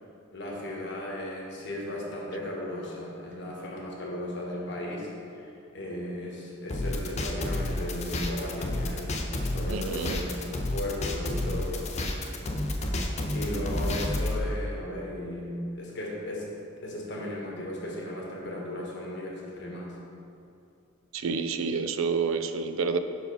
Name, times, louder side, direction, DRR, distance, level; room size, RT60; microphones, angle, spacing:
voice 1, 0.3-9.2 9.5-10.4 10.7-11.9 12.2-12.5 13.3-16.5 16.8-20.0, left 1 dB, 55° left, -3 dB, 1.3 m, -36 dB
sound 1, 6.7-14.4, left 1 dB, 35° left, 0.5 m, -30 dB
voice 2, 9.7-10.2 13.5-13.6 21.1-23.0, right 5 dB, 75° right, 9 dB, 0.4 m, -29 dB
5.5 x 4.8 x 5.5 m, 2.7 s
head